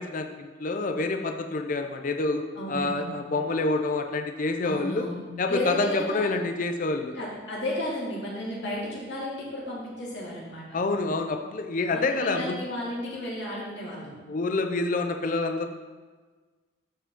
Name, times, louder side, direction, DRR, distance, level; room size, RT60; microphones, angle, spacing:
voice 1, 0.0-2.4 2.7-5.1 5.4-7.1 10.7-12.6 14.3-15.7, left 3 dB, 40° left, 5 dB, 0.4 m, -27 dB
voice 2, 2.5-3.1 4.6-6.3 7.1-10.6 11.9-14.1, left 1 dB, 60° left, -5 dB, 2.4 m, -33 dB
12.0 x 5.0 x 3.6 m, 1.4 s
head